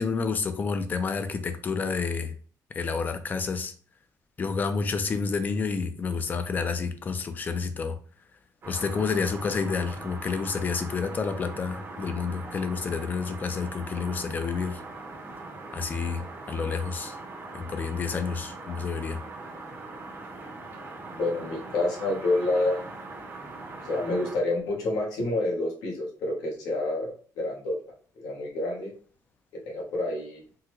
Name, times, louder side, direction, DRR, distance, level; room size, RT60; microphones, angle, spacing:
voice 1, 0.0-2.3 2.7-3.7 4.4-8.0 8.7-14.8 15.7-17.2 17.5-19.2, left 5 dB, 25° left, 0.3 m, -29 dB
sound 1, 8.6-24.4, right 3 dB, 35° right, 0.7 m, -41 dB
voice 2, 21.1-22.8 23.8-27.8 28.2-28.9 29.5-30.4, left 2 dB, 85° left, 1.1 m, -28 dB
3.7 x 2.1 x 2.9 m
cardioid pair, 145°, 7 cm